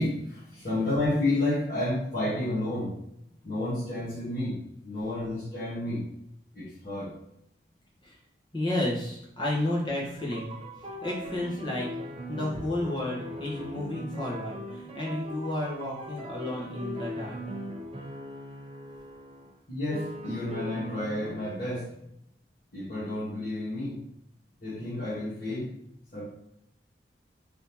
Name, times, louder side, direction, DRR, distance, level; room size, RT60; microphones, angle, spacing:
voice 1, 0.0-2.9 3.4-4.6 4.8-6.0 6.5-7.1 19.7-21.9 22.7-24.0 24.6-25.7 26.1-26.2, left 1 dB, 50° left, -11 dB, 1.4 m, -30 dB
voice 2, 8.5-10.5 11.0-11.9 12.3-17.4, left 1 dB, 25° left, -4 dB, 1.1 m, -32 dB
sound 1, 10.2-19.5 19.9-21.8, equal, 30° right, 0.6 m, -40 dB
3.8 x 3.5 x 2.9 m, 0.75 s
head